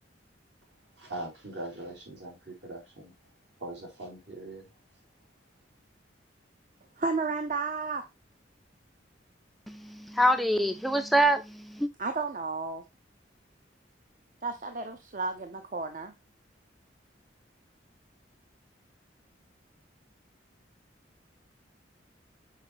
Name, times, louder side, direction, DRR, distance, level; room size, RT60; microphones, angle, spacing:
voice 1, 1.0-3.1 3.6-4.7, right 1 dB, 65° right, 3.7 m, -41 dB
voice 2, 7.0-8.1 12.0-12.8 14.4-16.1, right 4 dB, 45° right, 0.7 m, -32 dB
voice 3, 9.7-11.9, right 1 dB, ahead, 0.3 m, -25 dB
6.5 x 4.9 x 3.1 m
head